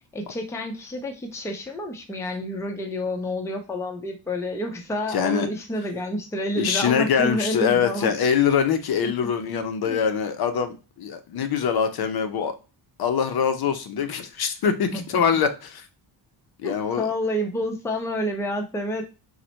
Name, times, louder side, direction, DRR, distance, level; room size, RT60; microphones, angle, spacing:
voice 1, 0.1-8.1 9.0-9.3 9.8-10.0 14.6-15.2 16.6-19.0, left 1 dB, 5° left, 3 dB, 0.5 m, -29 dB
voice 2, 5.1-5.5 6.6-12.6 13.0-15.9 16.6-17.1, left 7 dB, 55° left, 8 dB, 0.5 m, -24 dB
4.0 x 2.1 x 2.8 m, 0.32 s
cardioid pair, 125°, 46 cm